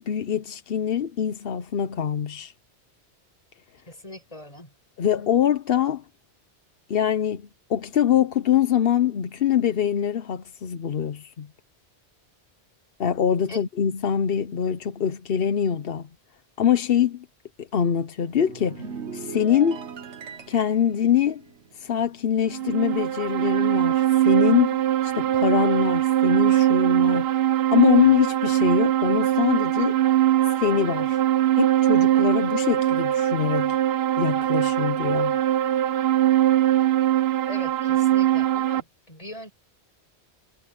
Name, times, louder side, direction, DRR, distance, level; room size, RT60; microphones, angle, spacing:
voice 1, 0.0-2.5 5.0-6.0 6.9-7.4 7.7-11.5 13.0-16.1 16.6-17.2 17.6-18.9 19.1-19.8 20.5-21.4 21.7-27.3 27.7-30.0 30.6-31.2 31.5-33.8 34.2-35.4, left 9 dB, 60° left, 1.0 m, -23 dB
voice 2, 3.9-4.7 13.5-13.6 37.5-39.5, left 1 dB, 30° left, 6.1 m, -40 dB
sound 1, 18.2-22.9 23.1-23.4, right 5 dB, 85° right, 1.5 m, -40 dB
sound 2, 22.5-38.8, right 12 dB, 65° right, 0.9 m, -21 dB
omnidirectional pair, 1.1 m